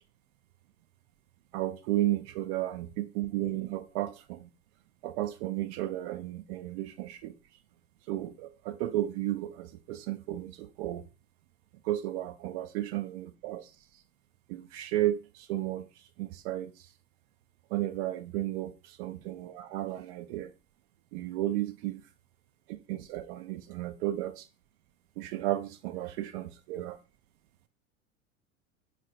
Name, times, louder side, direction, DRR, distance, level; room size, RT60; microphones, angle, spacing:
voice 1, 1.5-4.5 5.0-7.3 8.1-11.0 11.8-13.7 14.5-15.9 16.2-16.7 17.7-20.5 21.1-22.0 22.9-24.5 25.2-27.0, right 14 dB, 55° right, 0.5 m, -33 dB
3.9 x 2.1 x 2.8 m
figure-of-eight pair, 80°, 40 cm